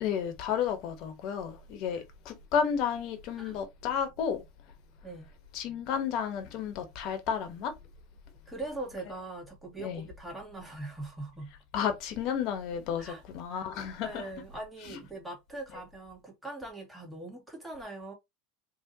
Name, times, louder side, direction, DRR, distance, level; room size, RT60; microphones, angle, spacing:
voice 1, 0.0-4.4 5.5-7.7 9.8-10.0 11.7-14.2 14.9-15.0, left 7 dB, 55° left, 1.0 m, -32 dB
voice 2, 8.5-11.5 13.0-13.2 13.5-13.7 14.0-18.1, right 2 dB, 5° right, 1.8 m, -41 dB
3.6 x 2.4 x 2.8 m
hypercardioid pair, 95°, 0 cm